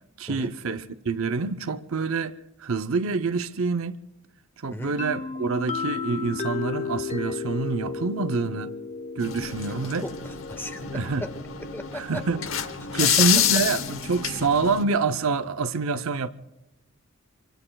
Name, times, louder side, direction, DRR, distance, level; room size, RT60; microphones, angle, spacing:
voice 1, 0.2-4.0 4.6-8.7 9.2-10.1 10.9-11.3 11.9-12.5 12.9-16.3, right 4 dB, 75° right, 0.7 m, -26 dB
sound 1, 5.0-12.6, left 5 dB, 35° left, 0.8 m, -34 dB
sound 2, 9.2-14.8, left 9 dB, 70° left, 0.9 m, -28 dB
voice 2, 10.0-10.8 11.2-11.3 11.7-12.0, left 1 dB, 10° left, 1.1 m, -36 dB
25.5 x 24.5 x 2.3 m
head